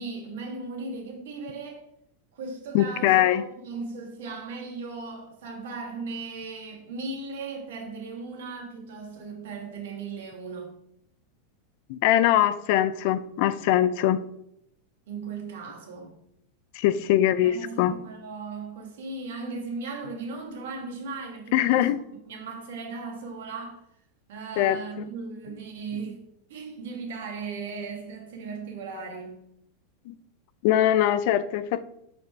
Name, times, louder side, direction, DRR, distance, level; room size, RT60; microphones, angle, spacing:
voice 1, 0.0-1.9 2.3-10.7 15.1-16.1 17.4-21.9 22.3-23.8 24.3-26.2 26.5-29.4, right 4 dB, 80° right, 1.7 m, -37 dB
voice 2, 2.7-3.4 11.9-14.2 16.7-17.9 21.5-22.0 24.6-25.0 30.1-30.2 30.6-31.9, left 12 dB, 55° left, 0.4 m, -22 dB
5.4 x 4.2 x 4.5 m
supercardioid pair, 150°, 0 cm